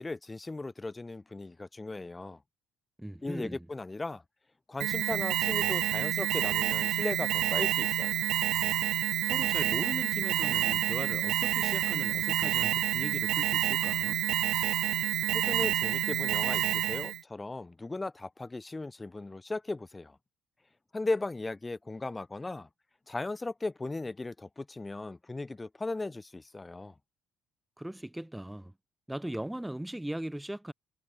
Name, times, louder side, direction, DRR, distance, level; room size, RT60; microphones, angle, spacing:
voice 1, 0.0-2.4 3.2-4.2 4.7-8.2 15.3-20.2 20.9-22.7 23.1-26.9, left 2 dB, 10° left, 4.4 m, -37 dB
voice 2, 3.0-3.7 9.2-14.2 27.8-28.7 29.1-30.7, right 1 dB, 5° right, 3.9 m, -39 dB
Alarm, 4.8-17.2, right 14 dB, 65° right, 0.5 m, -28 dB
cardioid pair, 150°, 0 cm